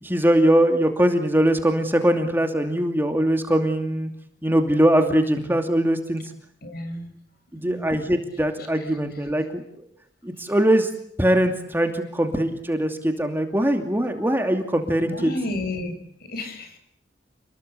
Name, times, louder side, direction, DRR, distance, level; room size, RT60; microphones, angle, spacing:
voice 1, 0.0-4.1 4.4-6.2 7.5-9.8 10.2-10.9 11.2-15.3, right 1 dB, 10° right, 5 dB, 2.6 m, -21 dB
voice 2, 6.6-7.1 7.6-7.9 15.1-15.9 16.2-16.8, left 1 dB, 60° left, 7 dB, 8.0 m, -31 dB
29.0 x 21.0 x 8.3 m, 0.67 s
head